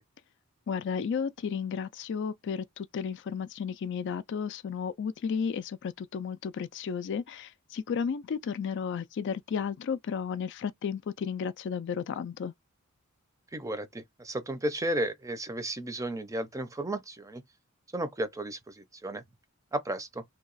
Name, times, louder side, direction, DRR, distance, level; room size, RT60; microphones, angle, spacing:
voice 1, 0.7-12.5, left 6 dB, 55° left, 0.3 m, -33 dB
voice 2, 13.5-17.4 17.9-19.2 19.7-20.2, right 1 dB, 15° right, 0.5 m, -33 dB
2.9 x 2.3 x 3.9 m
head